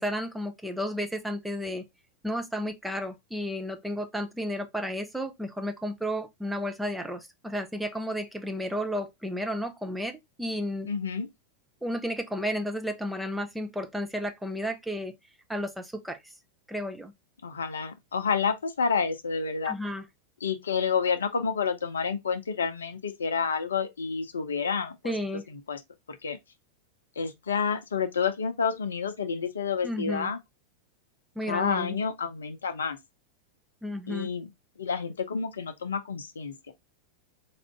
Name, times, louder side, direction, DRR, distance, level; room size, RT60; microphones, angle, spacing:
voice 1, 0.0-1.8 2.2-10.9 11.8-15.1 15.5-16.2 16.7-17.1 19.6-20.0 25.0-25.4 29.8-30.3 31.4-32.0 33.8-34.3, equal, 5° right, 0.6 m, -32 dB
voice 2, 10.8-11.3 17.4-19.7 20.4-25.1 25.5-25.8 26.1-26.4 27.2-30.4 31.5-33.0 34.1-34.5 34.8-36.5, left 6 dB, 70° left, 0.6 m, -29 dB
4.2 x 2.5 x 3.4 m
figure-of-eight pair, 90°, 0 cm